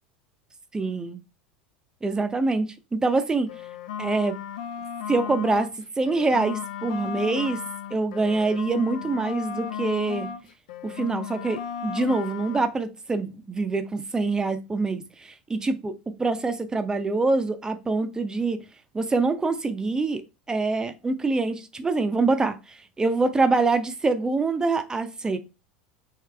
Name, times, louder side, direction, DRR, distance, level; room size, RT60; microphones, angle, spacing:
voice 1, 0.7-1.2 2.0-3.5 4.0-4.4 5.1-5.7 6.0-7.6 7.9-10.3 10.8-18.6 18.9-20.2 20.5-22.6 23.0-25.4, right 3 dB, 15° right, 0.5 m, -25 dB
sound 1, 3.4-5.7 6.0-10.4 10.7-12.7, left 8 dB, 70° left, 0.4 m, -35 dB
3.3 x 3.1 x 3.4 m
hypercardioid pair, 80°, 5 cm